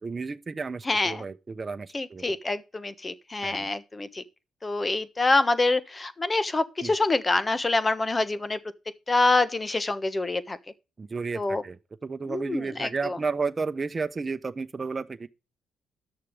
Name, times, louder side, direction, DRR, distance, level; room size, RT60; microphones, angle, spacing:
voice 1, 0.0-2.2 3.4-3.7 6.8-6.9 11.0-11.8 12.0-15.3, right 4 dB, 35° right, 0.9 m, -32 dB
voice 2, 0.8-1.2 1.9-4.2 4.6-8.6 9.1-10.6 11.3-11.6 12.3-13.2, left 2 dB, 25° left, 1.3 m, -26 dB
11.0 x 6.7 x 5.1 m
supercardioid pair, 65°, 0 cm